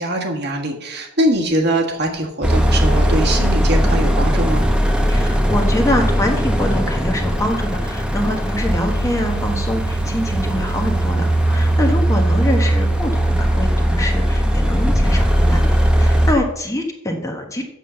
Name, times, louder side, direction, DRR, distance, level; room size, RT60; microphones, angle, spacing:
voice 1, 0.0-4.6, right 1 dB, 50° right, 1 dB, 1.7 m, -22 dB
sound 1, 2.4-16.3, equal, 5° right, 0.9 m, -18 dB
voice 2, 5.1-17.6, left 1 dB, 15° left, 2 dB, 1.2 m, -24 dB
7.5 x 7.2 x 6.9 m, 0.87 s
head